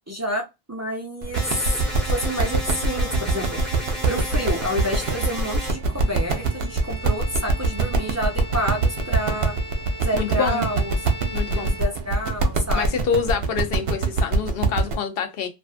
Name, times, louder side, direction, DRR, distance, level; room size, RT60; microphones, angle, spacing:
voice 1, 0.1-9.6 10.0-11.0 11.5-13.0, equal, 25° right, 0.4 m, -29 dB
sound 1, 1.2-14.9, right 3 dB, 70° right, 0.8 m, -24 dB
sound 2, 1.3-5.7, equal, ahead, 0.8 m, -33 dB
Bowed string instrument, 5.7-12.5, left 1 dB, 45° right, 1.0 m, -39 dB
voice 2, 10.1-10.7 11.3-11.7 12.7-15.5, left 6 dB, 65° left, 0.8 m, -26 dB
2.5 x 2.4 x 2.4 m
omnidirectional pair, 1.1 m